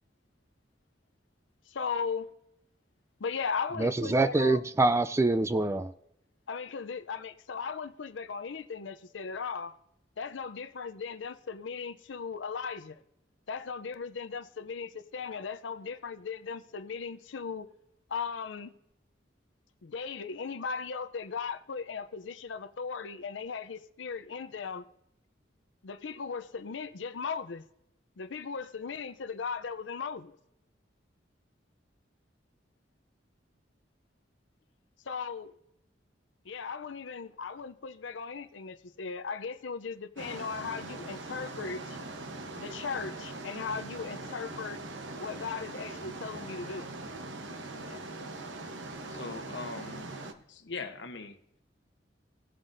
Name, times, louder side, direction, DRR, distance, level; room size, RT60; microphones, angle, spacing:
voice 1, 1.7-2.3 3.2-4.6 6.5-9.8 10.2-13.0 13.5-17.7 18.1-18.7 19.8-24.8 25.8-27.6 28.2-30.4 35.1-35.5 36.4-42.0 42.6-44.8 45.2-46.9 47.8-48.0, left 5 dB, 90° left, 0.6 m, -37 dB
voice 2, 3.8-5.9, right 2 dB, 15° right, 0.3 m, -25 dB
sound 1, 40.2-50.3, right 2 dB, 90° right, 1.0 m, -41 dB
voice 3, 49.1-50.1 50.5-51.6, left 4 dB, 70° left, 1.0 m, -41 dB
18.0 x 7.5 x 2.6 m
head